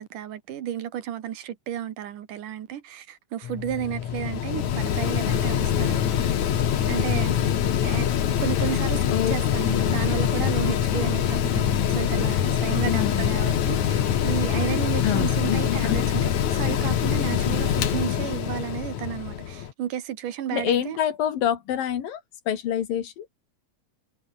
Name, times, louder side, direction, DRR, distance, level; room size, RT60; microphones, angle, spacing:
voice 1, 0.0-6.2 6.5-7.3 7.8-8.1 8.4-21.0, right 10 dB, 70° right, 3.0 m, -32 dB
Mechanical fan, 3.4-19.7, left 9 dB, 60° left, 2.9 m, -24 dB
voice 2, 9.7-10.0 12.9-13.3 15.0-16.0 20.5-22.2 22.5-23.3, left 10 dB, 75° left, 3.7 m, -27 dB
omnidirectional pair, 4.1 m